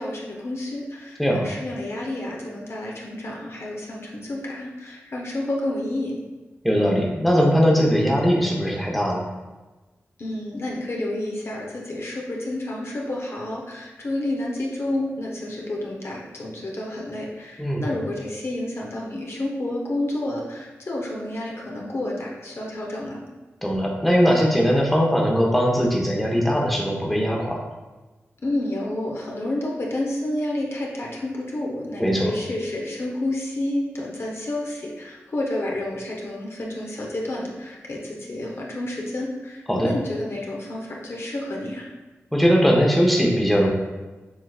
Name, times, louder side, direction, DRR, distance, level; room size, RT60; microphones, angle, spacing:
voice 1, 0.0-6.1 10.2-23.2 28.4-41.9, left 1 dB, 55° left, -3 dB, 0.9 m, -30 dB
voice 2, 6.6-9.2 17.6-18.0 23.6-27.6 32.0-32.3 39.7-39.9 42.3-43.7, equal, ahead, -1 dB, 0.9 m, -20 dB
6.6 x 3.0 x 2.4 m, 1.2 s
cardioid pair, 50°, 5 cm